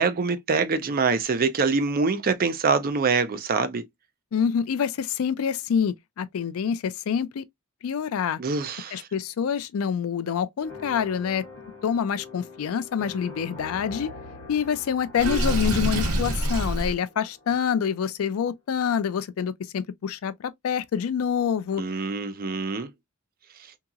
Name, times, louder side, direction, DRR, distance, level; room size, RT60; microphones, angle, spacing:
voice 1, 0.0-3.8 8.4-9.1 21.8-22.9, right 4 dB, 40° right, 0.5 m, -24 dB
voice 2, 4.3-7.4 7.8-8.4 8.9-11.4 11.8-14.1 14.5-21.8, left 7 dB, 70° left, 0.4 m, -26 dB
sound 1, 10.6-17.7, left 3 dB, 40° left, 1.2 m, -44 dB
Water / Sink (filling or washing), 15.2-16.9, right 1 dB, 90° right, 0.9 m, -25 dB
2.8 x 2.8 x 2.3 m
head